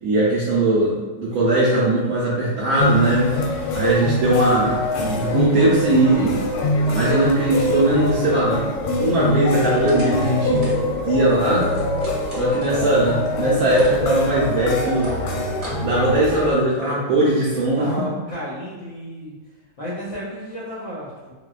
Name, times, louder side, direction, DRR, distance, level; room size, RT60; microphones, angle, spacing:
voice 1, 0.0-3.4 3.7-6.3 6.9-8.7 9.0-10.6 11.0-11.7 12.3-15.1 15.8-17.9, right 1 dB, 85° right, -7 dB, 0.7 m, -19 dB
sound 1, 2.8-16.5, left 1 dB, 90° left, 1.3 m, -23 dB
sound 2, 9.9-12.9 13.3-16.5, equal, 50° right, 0.8 m, -38 dB
voice 2, 17.8-19.3 19.8-21.3, equal, 70° left, -7 dB, 0.7 m, -32 dB
3.9 x 2.2 x 2.3 m, 1.3 s
omnidirectional pair, 2.1 m